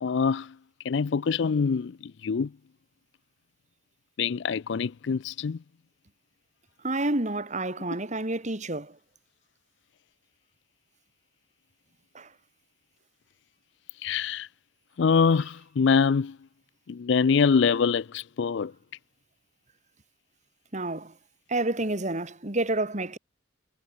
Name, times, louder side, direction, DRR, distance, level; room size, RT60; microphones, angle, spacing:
voice 1, 0.0-0.5 0.8-2.5 4.2-5.6 14.0-14.5 15.0-16.4 16.9-18.7, left 5 dB, 65° left, 0.4 m, -24 dB
voice 2, 6.8-9.0 12.1-12.3 20.7-21.1 21.5-23.2, right 2 dB, 35° right, 2.3 m, -29 dB
head